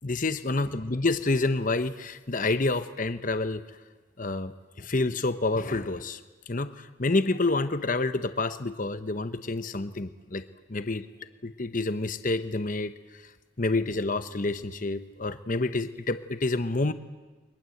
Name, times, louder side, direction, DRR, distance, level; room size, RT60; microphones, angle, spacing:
voice 1, 0.0-3.6 4.2-4.5 4.8-6.2 6.5-11.1 11.4-13.2 13.6-16.9, left 2 dB, 40° left, 11 dB, 1.0 m, -28 dB
29.5 x 23.0 x 7.9 m, 1.2 s
head